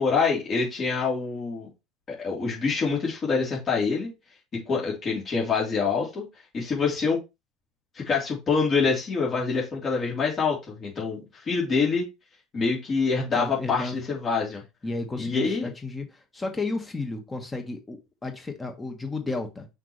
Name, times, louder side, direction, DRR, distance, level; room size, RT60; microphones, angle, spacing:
voice 1, 0.0-1.7 2.1-4.1 4.5-6.2 6.5-7.2 7.9-11.2 11.4-12.1 12.5-14.6 15.2-15.7, left 5 dB, 35° left, -3 dB, 3.2 m, -26 dB
voice 2, 13.3-14.0 14.8-19.7, left 3 dB, 20° left, 5 dB, 1.5 m, -33 dB
5.8 x 5.3 x 3.1 m, 0.24 s
hypercardioid pair, 90°, 0 cm